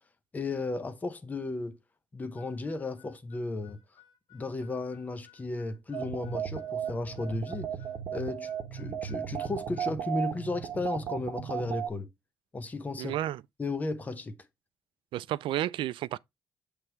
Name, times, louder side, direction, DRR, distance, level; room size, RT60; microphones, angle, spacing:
voice 1, 0.3-1.8 2.1-3.8 4.3-7.7 8.1-12.1 12.5-13.1 13.6-14.3, left 2 dB, 20° left, 0.7 m, -34 dB
Harmonica, 2.4-10.0, left 12 dB, 60° left, 1.7 m, -61 dB
sound 1, 5.9-11.9, right 8 dB, 65° right, 1.0 m, -35 dB
voice 2, 13.0-13.4 15.1-16.2, right 13 dB, 80° right, 0.3 m, -31 dB
7.9 x 3.4 x 4.4 m
cardioid pair, 170°, 8 cm